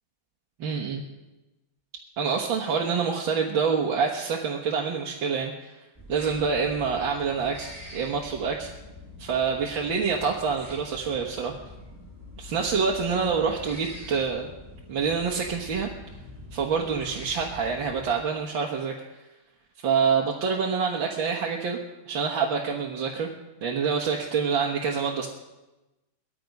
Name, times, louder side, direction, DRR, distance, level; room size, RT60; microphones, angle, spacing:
voice 1, 0.6-1.0 2.2-5.8 6.1-8.7 9.2-11.5 12.4-14.5 14.9-15.9 16.5-18.9 19.8-21.8 22.1-23.3 23.6-25.3, right 5 dB, 65° right, 0 dB, 2.1 m, -26 dB
sound 1, 6.0-18.1, left 2 dB, 10° right, 4.0 m, -45 dB
19.0 x 14.0 x 5.4 m, 1.0 s
omnidirectional pair, 2.4 m